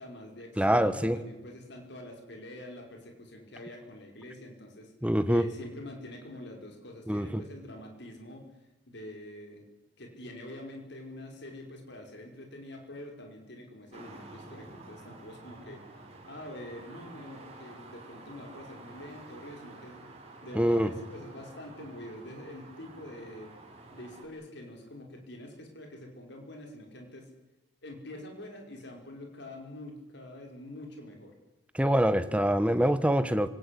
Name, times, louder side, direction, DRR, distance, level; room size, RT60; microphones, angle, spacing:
voice 1, 0.0-4.9 5.3-8.4 8.9-9.6 10.0-15.8 16.3-20.0 20.4-23.5 23.9-27.3 27.8-31.3, left 1 dB, 60° left, 2 dB, 5.3 m, -45 dB
voice 2, 0.6-1.2 5.0-5.5 7.1-7.4 20.5-20.9 31.7-33.5, equal, 5° right, 12 dB, 1.2 m, -25 dB
sound 1, 13.9-24.2, right 2 dB, 35° right, 5.6 m, -50 dB
29.0 x 18.0 x 8.6 m, 1.0 s
head